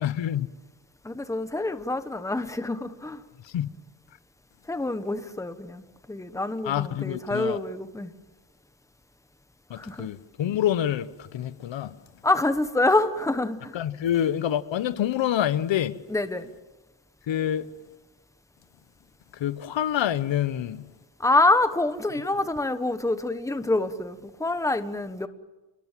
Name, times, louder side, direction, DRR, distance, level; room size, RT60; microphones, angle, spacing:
voice 1, 0.0-0.5 3.4-3.7 6.6-7.6 9.7-12.0 13.7-16.0 17.3-17.7 19.3-20.9, left 11 dB, 80° left, 1.1 m, -27 dB
voice 2, 1.0-3.2 4.7-8.1 9.7-10.1 12.2-13.7 16.1-16.5 21.2-25.3, left 2 dB, 5° left, 1.2 m, -26 dB
27.5 x 22.0 x 7.5 m
wide cardioid pair, 165°, 44 cm